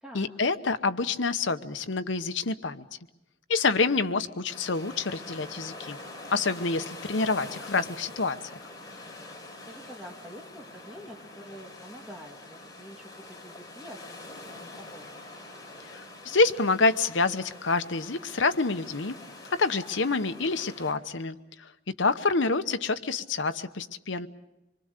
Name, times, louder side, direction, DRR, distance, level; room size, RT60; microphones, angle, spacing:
voice 1, 0.1-2.9 3.5-6.0 6.3-8.5 15.8-19.2 19.5-21.7 22.0-24.3, left 3 dB, 75° left, 10 dB, 1.0 m, -27 dB
sound 1, 4.5-20.9, left 2 dB, 20° left, 4.3 m, -45 dB
voice 2, 9.7-15.2, equal, 5° right, -2 dB, 2.0 m, -47 dB
26.0 x 24.0 x 6.7 m, 0.92 s
head